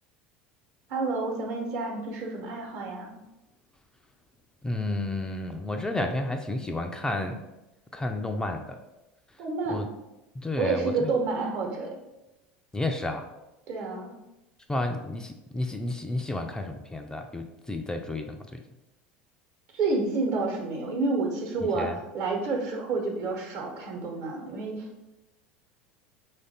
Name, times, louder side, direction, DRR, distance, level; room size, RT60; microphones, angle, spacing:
voice 1, 0.9-3.1 9.4-9.8 10.6-11.9 13.7-14.1 19.7-24.9, right 3 dB, 55° right, 0 dB, 1.0 m, -29 dB
voice 2, 4.6-7.4 7.9-8.8 9.7-9.9 10.4-11.1 12.7-13.2 14.7-18.4 21.8-21.9, left 2 dB, 10° left, 4 dB, 0.4 m, -31 dB
3.1 x 2.5 x 4.2 m, 0.96 s
hypercardioid pair, 80°, 6 cm